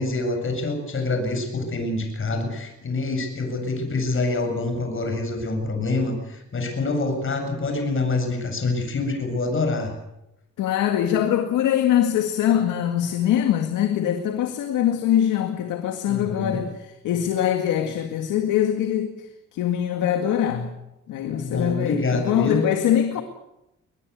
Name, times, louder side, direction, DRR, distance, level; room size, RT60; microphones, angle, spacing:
voice 1, 0.0-9.9 16.1-16.6 21.3-22.7, left 3 dB, 45° left, 7.7 m, -26 dB
voice 2, 10.6-19.1 19.5-20.8 21.1-23.2, left 10 dB, 90° left, 2.1 m, -23 dB
22.5 x 20.5 x 8.3 m
cardioid pair, 90°, 30 cm